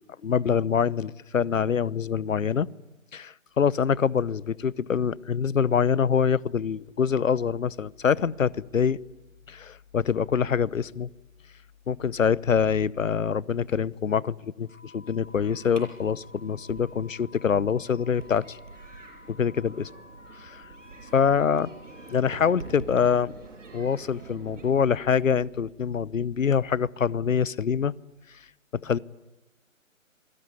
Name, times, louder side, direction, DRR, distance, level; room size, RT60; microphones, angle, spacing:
voice 1, 0.0-2.7 3.1-9.0 9.5-11.1 11.9-18.6 19.3-19.9 20.4-20.7 21.1-21.7 22.1-23.4 23.7-27.9 28.3-28.4 28.7-29.0, left 7 dB, 70° left, 22 dB, 1.0 m, -25 dB
sound 1, 14.6-22.7, left 3 dB, 20° left, 7.3 m, -53 dB
sound 2, 15.2-24.6, right 4 dB, 60° right, 7.2 m, -46 dB
27.0 x 22.0 x 9.8 m, 1.1 s
figure-of-eight pair, 145°, 41 cm